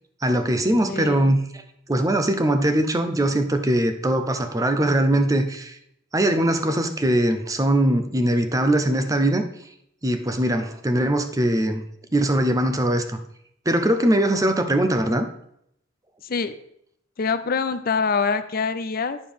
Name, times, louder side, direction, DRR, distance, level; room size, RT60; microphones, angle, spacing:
voice 1, 0.2-1.4 1.9-5.8 6.1-9.4 10.0-11.8 12.1-13.2 13.7-15.3, right 1 dB, 15° right, 8 dB, 0.6 m, -21 dB
voice 2, 0.9-1.3 16.2-16.6 17.2-19.2, left 5 dB, 45° left, 12 dB, 0.5 m, -25 dB
9.4 x 6.7 x 3.5 m, 0.73 s
head